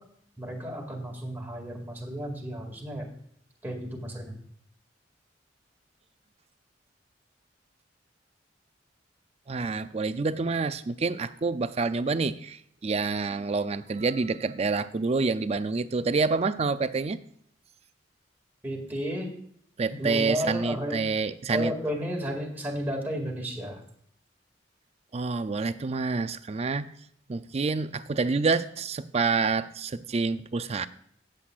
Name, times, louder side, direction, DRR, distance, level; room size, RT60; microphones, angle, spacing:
voice 1, 0.4-3.1 3.6-4.3 18.6-19.3 19.9-21.0 21.5-23.8, equal, 10° right, -1 dB, 2.1 m, -33 dB
voice 2, 9.5-17.2 19.8-21.7 25.1-26.9 27.3-30.9, right 4 dB, 35° right, 13 dB, 0.4 m, -27 dB
17.0 x 7.7 x 2.4 m, 0.67 s
head